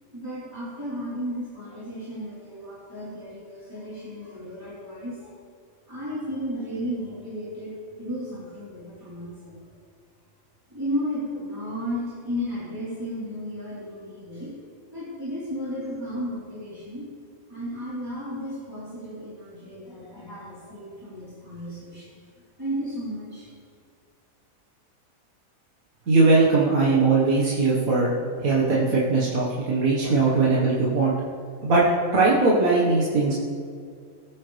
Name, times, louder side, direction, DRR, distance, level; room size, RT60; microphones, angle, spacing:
voice 1, 0.1-5.3 5.9-9.6 10.7-14.5 14.9-17.1 17.5-22.2 22.6-23.5, equal, 15° right, -11 dB, 4.1 m, -34 dB
voice 2, 26.1-28.1 28.4-31.1 31.6-31.8 32.1-33.3, right 3 dB, 75° right, -6 dB, 2.1 m, -20 dB
20.5 x 9.6 x 3.4 m, 2.1 s
omnidirectional pair, 1.5 m